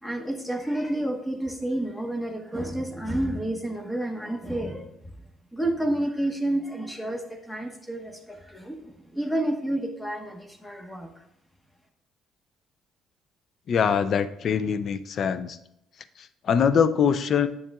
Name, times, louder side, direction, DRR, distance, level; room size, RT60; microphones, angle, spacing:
voice 1, 0.0-4.9 5.5-11.1, right 1 dB, 5° left, 4 dB, 1.2 m, -30 dB
voice 2, 13.7-15.6 16.2-17.5, left 7 dB, 55° left, 13 dB, 0.5 m, -23 dB
9.2 x 7.2 x 2.4 m, 0.80 s
supercardioid pair, 75°, 0 cm